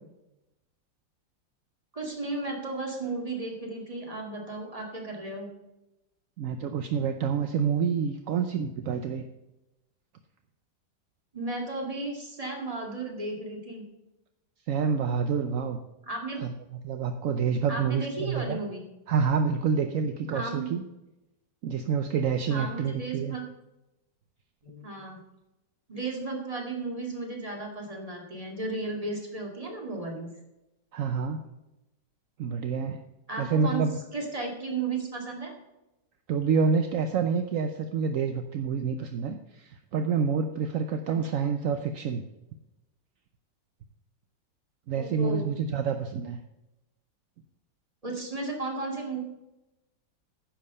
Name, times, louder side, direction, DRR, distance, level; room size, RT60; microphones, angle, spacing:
voice 1, 1.9-5.5 11.3-13.8 16.1-16.4 17.7-18.8 20.3-20.7 22.5-23.4 24.6-25.2 25.9-30.3 33.3-33.8 34.1-35.5 41.1-41.2 44.9-45.4 48.0-49.2, right 3 dB, 20° right, 0 dB, 2.2 m, -34 dB
voice 2, 6.4-9.3 14.7-15.8 16.4-16.5 16.8-18.6 19.1-20.8 21.6-23.4 30.9-31.4 32.4-33.0 33.4-34.0 36.3-42.2 44.9-46.4, right 6 dB, 65° right, 7 dB, 0.8 m, -28 dB
10.0 x 7.6 x 5.5 m, 0.94 s
omnidirectional pair, 2.0 m